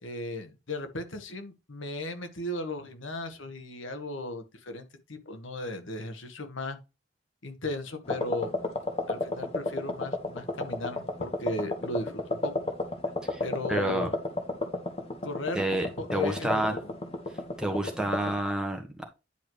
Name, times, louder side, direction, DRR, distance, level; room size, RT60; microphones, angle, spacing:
voice 1, 0.0-6.8 7.4-8.5 9.1-12.5 13.4-14.1 15.2-15.6 16.0-16.8, left 1 dB, 85° left, 1.5 m, -36 dB
sound 1, 8.1-18.4, left 2 dB, 30° left, 1.3 m, -33 dB
voice 2, 13.7-14.1 15.5-16.8 17.3-19.0, right 1 dB, 5° right, 1.4 m, -29 dB
10.0 x 4.8 x 3.1 m
head